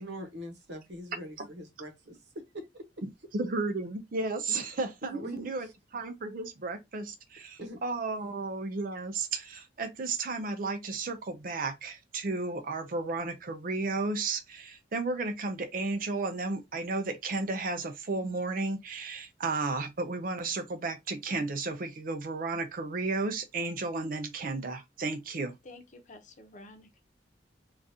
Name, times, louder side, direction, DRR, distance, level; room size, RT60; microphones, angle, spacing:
voice 1, 0.0-2.8 5.0-5.5 7.6-7.8, right 1 dB, 75° right, 1.1 m, -42 dB
voice 2, 3.0-25.6, right 3 dB, 50° right, 0.5 m, -33 dB
voice 3, 25.6-27.0, left 2 dB, 45° left, 0.8 m, -50 dB
3.7 x 2.4 x 2.7 m
head